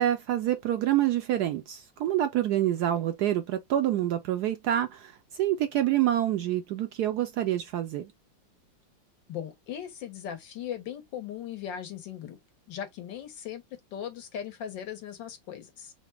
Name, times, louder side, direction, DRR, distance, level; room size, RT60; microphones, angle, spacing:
voice 1, 0.0-8.1, right 12 dB, 75° right, 0.9 m, -27 dB
voice 2, 9.3-12.4 12.7-13.6 13.9-15.9, left 9 dB, 75° left, 1.7 m, -38 dB
4.0 x 2.1 x 4.5 m
omnidirectional pair, 2.1 m